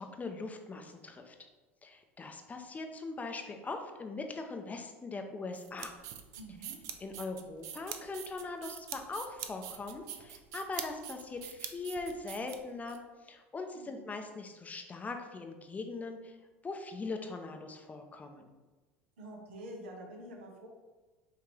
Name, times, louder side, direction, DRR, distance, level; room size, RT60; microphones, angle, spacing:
voice 1, 0.0-1.4 1.8-5.9 7.0-16.4 16.6-18.5, left 3 dB, 20° left, 5 dB, 0.6 m, -41 dB
sound 1, 5.5-13.0, right 10 dB, 55° right, 0.5 m, -44 dB
voice 2, 6.3-6.9 13.7-14.1 19.2-20.7, right 1 dB, 75° right, 1 dB, 1.0 m, -47 dB
5.7 x 2.8 x 3.2 m, 1.2 s
hypercardioid pair, 75°, 7 cm